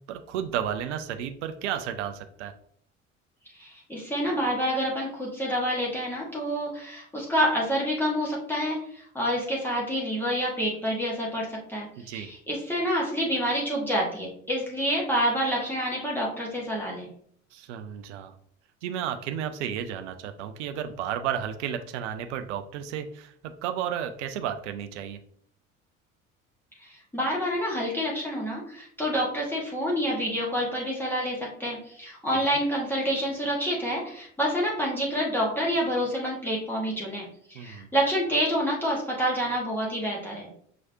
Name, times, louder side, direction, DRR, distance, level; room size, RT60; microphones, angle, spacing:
voice 1, 0.1-2.5 12.0-12.3 17.5-18.3 18.8-25.2 37.5-37.9, right 9 dB, 65° right, 8 dB, 0.6 m, -32 dB
voice 2, 3.5-17.1 26.8-40.5, equal, 5° left, -4 dB, 1.2 m, -28 dB
6.0 x 3.1 x 2.7 m, 0.65 s
figure-of-eight pair, 60°, 39 cm